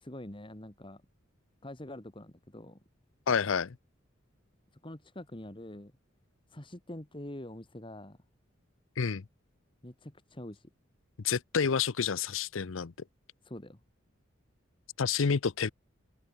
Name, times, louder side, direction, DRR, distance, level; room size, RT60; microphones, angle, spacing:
voice 1, 0.0-1.0 1.6-2.8 4.8-5.9 6.5-8.2 9.8-10.7 13.4-13.8, left 1 dB, 25° left, 1.8 m, -45 dB
voice 2, 3.3-3.8 9.0-9.2 11.2-12.9 15.0-15.7, left 6 dB, 70° left, 0.6 m, -29 dB
head